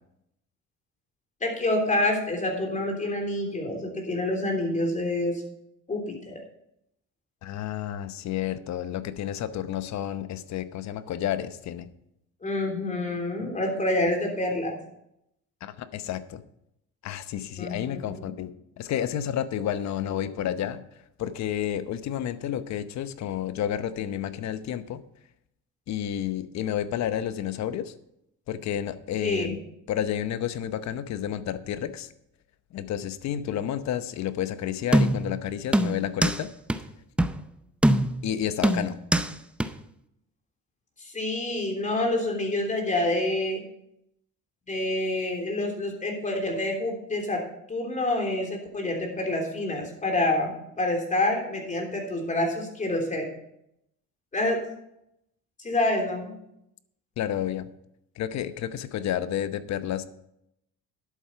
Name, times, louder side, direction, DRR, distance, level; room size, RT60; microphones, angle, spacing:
voice 1, 1.4-5.4 5.9-6.4 12.4-14.8 17.6-18.3 20.3-20.4 29.2-29.6 41.0-43.6 44.7-47.4 47.7-53.3 54.3-54.6 55.6-56.3, left 1 dB, 25° left, 1 dB, 3.4 m, -27 dB
voice 2, 7.4-11.9 15.6-16.4 17.0-20.8 21.2-25.0 25.9-27.9 28.5-29.6 29.9-32.1 32.7-36.5 38.2-39.0 57.2-57.7 58.2-60.1, left 10 dB, 60° left, 13 dB, 0.9 m, -30 dB
sound 1, 34.9-35.4 35.7-36.4 36.7-36.8 37.2-37.4 37.8-38.3 38.6-39.3 39.6-39.7, right 1 dB, 5° right, 0.5 m, -22 dB
11.0 x 8.3 x 5.7 m, 0.79 s
cardioid pair, 110°, 30 cm